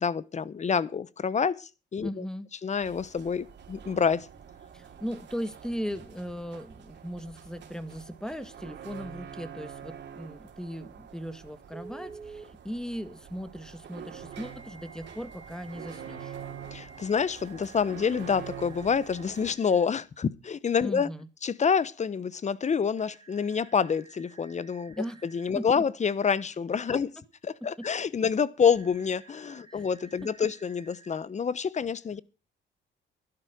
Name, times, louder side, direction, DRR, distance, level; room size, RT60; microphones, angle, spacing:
voice 1, 0.0-2.2 2.6-4.3 16.7-21.1 21.4-25.0 25.2-27.1 27.6-32.2, left 6 dB, 35° left, 1.0 m, -27 dB
voice 2, 2.0-2.5 4.7-16.4 20.8-21.3 25.0-25.2 25.5-25.8 26.9-27.0 27.6-27.9 29.7-29.8, equal, 5° left, 1.8 m, -38 dB
sound 1, 2.8-19.5, right 8 dB, 60° right, 3.4 m, -46 dB
Telephone, 11.7-12.5 14.3-19.8 22.9-25.5 28.6-31.1, right 4 dB, 25° right, 3.0 m, -52 dB
12.0 x 12.0 x 6.1 m
cardioid pair, 90°, 20 cm